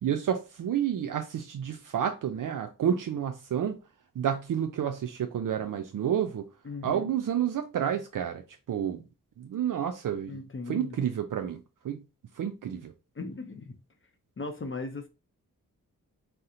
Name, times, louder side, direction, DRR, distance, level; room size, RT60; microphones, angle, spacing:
voice 1, 0.0-3.8 4.2-6.4 6.8-8.4 8.7-9.0 9.4-10.4 10.7-12.0 12.4-12.9, right 9 dB, 65° right, 0.4 m, -30 dB
voice 2, 6.6-7.1 10.3-11.0 13.2-13.8 14.4-15.1, left 3 dB, 35° left, 0.6 m, -37 dB
2.7 x 2.1 x 3.7 m
cardioid pair, 45°, 35 cm